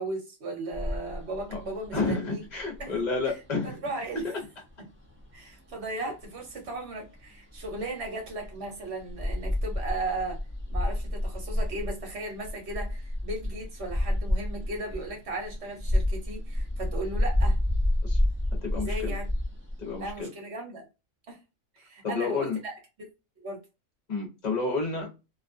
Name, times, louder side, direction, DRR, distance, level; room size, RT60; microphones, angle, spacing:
voice 1, 0.0-2.4 2.8-2.9 3.2-3.3 3.6-4.3 5.3-10.4 10.7-17.6 18.7-19.3 20.0-20.9 21.3-21.4 21.7-23.1 23.4-23.6, right 2 dB, 55° right, 1.2 m, -36 dB
sound 1, 0.7-20.2, left 1 dB, 20° right, 0.3 m, -30 dB
voice 2, 1.9-3.8 4.2-4.3 18.0-18.2 18.6-19.1 19.8-20.3 22.0-22.6 24.1-25.1, left 3 dB, 35° left, 0.8 m, -30 dB
2.5 x 2.3 x 2.5 m
omnidirectional pair, 1.5 m